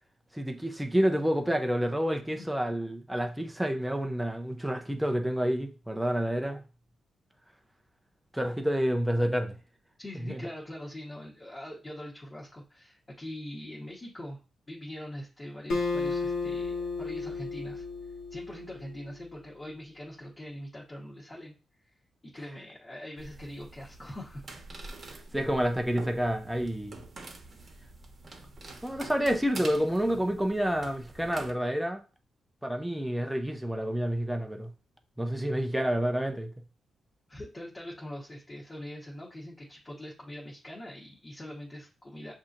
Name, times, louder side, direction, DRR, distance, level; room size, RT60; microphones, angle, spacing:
voice 1, 0.3-6.6 8.3-9.6 10.2-10.4 25.3-27.0 28.8-32.0 32.6-34.7 35.2-36.5, equal, 5° right, 0.5 m, -29 dB
voice 2, 10.0-14.4 14.7-17.8 18.3-21.5 21.8-21.9 22.2-24.5 37.3-42.3, left 1 dB, 25° left, 1.1 m, -43 dB
Acoustic guitar, 15.7-19.1, left 3 dB, 75° left, 1.1 m, -33 dB
sound 1, 23.2-31.5, right 2 dB, 40° right, 1.1 m, -46 dB
6.9 x 2.8 x 2.5 m
cardioid pair, 110°, 0 cm